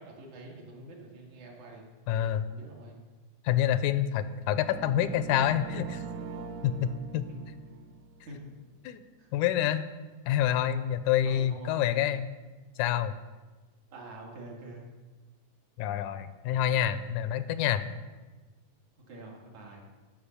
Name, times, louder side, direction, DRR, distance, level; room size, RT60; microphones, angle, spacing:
voice 1, 0.0-1.9 2.5-3.0 8.3-8.5 9.2-9.3 11.3-11.8 13.9-14.8 19.0-19.8, right 2 dB, 70° right, -1 dB, 3.2 m, -46 dB
voice 2, 2.1-2.5 3.4-6.0 6.4-7.2 8.8-9.0 9.3-9.9 10.3-12.3 12.8-13.2 15.8-17.9, left 10 dB, 85° left, 12 dB, 2.0 m, -27 dB
sound 1, 4.7-8.7, right 6 dB, 90° right, 1.4 m, -42 dB
13.5 x 5.3 x 6.8 m, 1.3 s
omnidirectional pair, 3.4 m